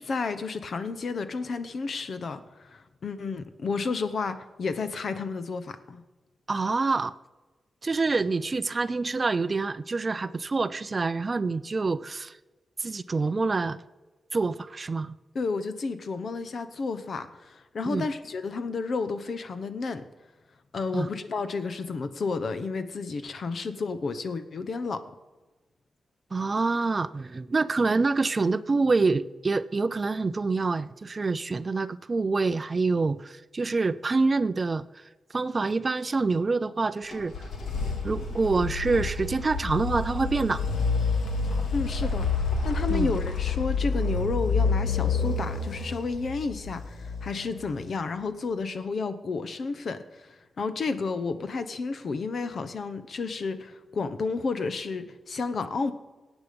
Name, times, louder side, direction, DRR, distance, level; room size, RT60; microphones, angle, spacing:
voice 1, 0.0-6.0 15.3-20.0 20.7-25.0 41.7-55.9, left 4 dB, 60° left, 11 dB, 1.0 m, -31 dB
voice 2, 6.5-7.1 7.8-12.4 12.8-13.8 14.3-15.2 17.9-18.1 20.9-21.1 26.3-35.0 35.3-37.3 38.0-40.6 42.9-43.1, right 3 dB, 35° right, 14 dB, 0.5 m, -26 dB
sound 1, 37.1-47.9, left 4 dB, 90° left, 2.1 m, -29 dB
18.5 x 8.3 x 5.3 m, 1.2 s
wide cardioid pair, 100°, 0 cm